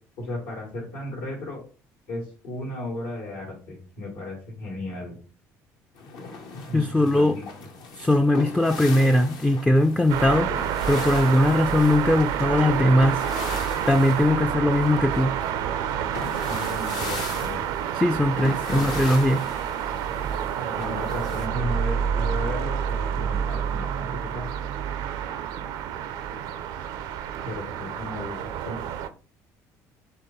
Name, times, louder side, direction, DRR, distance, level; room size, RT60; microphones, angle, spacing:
voice 1, 0.2-1.6 2.1-5.2 6.7-7.4 16.5-17.6 18.7-19.0 20.6-24.5 27.4-28.8, left 1 dB, 85° left, 1.9 m, -35 dB
sound 1, 6.0-21.5, left 4 dB, 65° left, 0.8 m, -39 dB
voice 2, 6.7-7.4 8.0-10.5 10.9-13.2 13.9-15.4 17.9-19.4, left 1 dB, 10° left, 0.3 m, -20 dB
sound 2, 10.1-29.1, right 9 dB, 75° right, 0.5 m, -28 dB
4.7 x 3.0 x 3.1 m
supercardioid pair, 70°, 8 cm